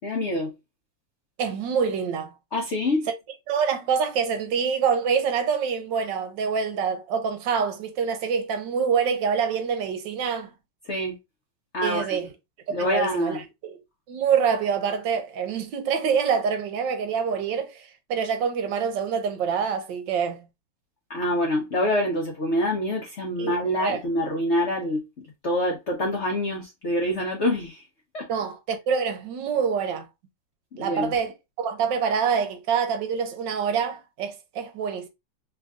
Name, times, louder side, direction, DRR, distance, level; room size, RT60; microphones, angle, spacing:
voice 1, 0.0-0.5 2.5-3.1 10.8-11.2 11.7-12.2 12.7-13.4 21.1-27.9 28.1-28.3 30.7-31.1, left 1 dB, 55° left, 0.8 m, -26 dB
voice 2, 1.4-2.3 3.5-10.5 11.8-12.3 12.7-13.4 13.6-13.8 14.1-20.4 23.4-23.5 23.8-24.0 28.3-30.1 30.8-31.3 31.6-35.1, right 6 dB, 75° right, 1.4 m, -26 dB
3.3 x 2.5 x 3.4 m
omnidirectional pair, 2.0 m